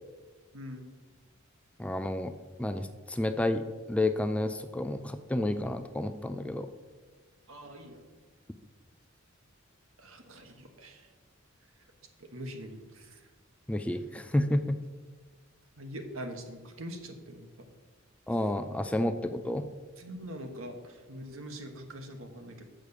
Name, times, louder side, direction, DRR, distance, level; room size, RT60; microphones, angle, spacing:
voice 1, 0.5-0.9 7.5-8.0 10.0-11.1 12.2-13.3 15.8-17.7 20.0-22.7, equal, 80° right, 5 dB, 1.3 m, -43 dB
voice 2, 1.8-2.3 2.6-6.7 13.7-14.8 18.3-19.6, left 1 dB, 5° left, 9 dB, 0.4 m, -30 dB
7.0 x 6.4 x 6.7 m, 1.4 s
head